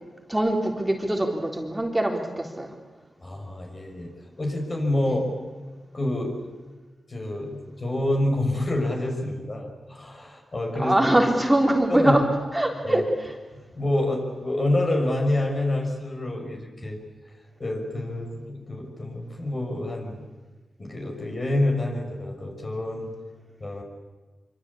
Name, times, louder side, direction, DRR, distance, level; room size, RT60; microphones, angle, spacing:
voice 1, 0.3-2.7 5.0-5.3 10.7-13.4, right 1 dB, 10° right, 1 dB, 3.6 m, -23 dB
voice 2, 3.2-5.2 5.9-6.5 7.1-10.9 11.9-12.1 12.8-13.0 13.7-20.2 20.8-23.1 23.6-23.8, left 1 dB, 30° left, 1 dB, 6.3 m, -27 dB
26.0 x 25.5 x 8.7 m, 1.3 s
wide cardioid pair, 115°, 0 cm